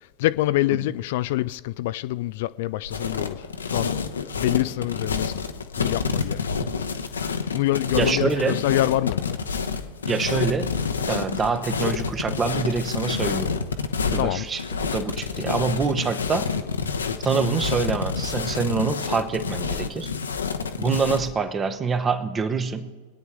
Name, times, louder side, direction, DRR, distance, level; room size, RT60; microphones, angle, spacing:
voice 1, 0.2-4.0 4.4-5.3 5.8-6.4 7.5-9.4 14.2-14.4, left 16 dB, 50° left, 0.3 m, -25 dB
sound 1, 2.8-21.3, left 5 dB, 70° left, 0.9 m, -28 dB
voice 2, 8.0-8.6 10.1-10.7 11.1-13.6 14.1-16.5 17.2-20.1 20.8-22.9, right 5 dB, 20° right, 1.0 m, -25 dB
24.5 x 9.5 x 3.6 m
figure-of-eight pair, 90°, 0 cm